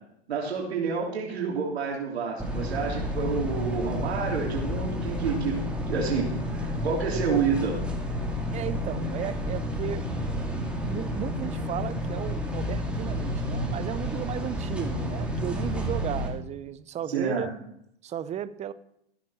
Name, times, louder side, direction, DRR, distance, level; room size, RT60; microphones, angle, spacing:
voice 1, 0.3-7.8 17.1-17.5, right 5 dB, 85° right, -1 dB, 3.2 m, -29 dB
sound 1, 2.4-16.3, left 1 dB, 5° right, 2.3 m, -30 dB
voice 2, 8.5-10.1 10.8-17.5 18.0-18.7, right 10 dB, 20° right, 15 dB, 0.7 m, -35 dB
14.5 x 7.6 x 6.3 m, 0.74 s
hypercardioid pair, 115°, 31 cm